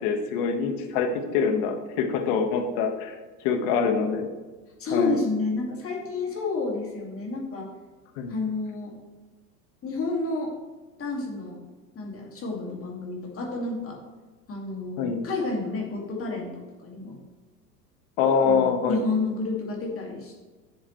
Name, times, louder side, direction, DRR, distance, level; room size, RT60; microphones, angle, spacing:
voice 1, 0.0-3.1 3.4-4.2 4.9-5.2 8.2-8.3 15.0-15.2 18.2-19.0, left 5 dB, 50° left, 5 dB, 1.6 m, -24 dB
voice 2, 4.8-7.7 8.3-8.9 9.8-10.5 11.0-11.6 12.0-14.0 14.5-17.2 18.4-20.4, left 3 dB, 25° left, -1 dB, 2.3 m, -30 dB
12.0 x 7.2 x 3.2 m, 1.3 s
hypercardioid pair, 95°, 49 cm